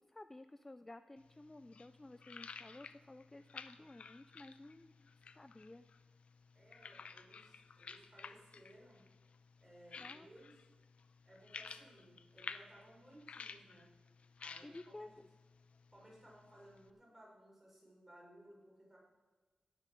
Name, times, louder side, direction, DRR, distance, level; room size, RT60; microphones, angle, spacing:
voice 1, 0.0-5.9 10.0-10.3 14.6-15.3, left 2 dB, 15° left, 11 dB, 0.3 m, -54 dB
sound 1, 1.2-16.9, left 5 dB, 60° left, 0.6 m, -54 dB
voice 2, 6.5-9.0 9.6-10.7 11.2-13.9 14.4-15.1 15.9-19.0, right 1 dB, 10° right, -4 dB, 4.8 m, -61 dB
17.5 x 7.5 x 6.3 m, 1.3 s
wide cardioid pair, 165°, 2 cm